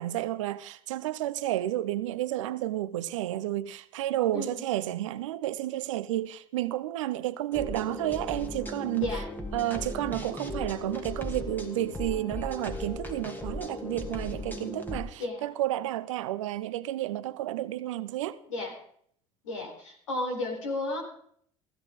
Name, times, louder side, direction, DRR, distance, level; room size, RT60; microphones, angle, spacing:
voice 1, 0.0-9.1 9.5-18.4, right 14 dB, 75° right, 0.8 m, -31 dB
voice 2, 4.3-4.7 9.0-9.3 15.2-15.5 18.5-18.7 19.4-21.0, left 2 dB, 80° left, 4.3 m, -33 dB
sound 1, 7.5-15.0, left 1 dB, 10° left, 2.8 m, -37 dB
16.0 x 15.5 x 3.9 m
hypercardioid pair, 60°, 16 cm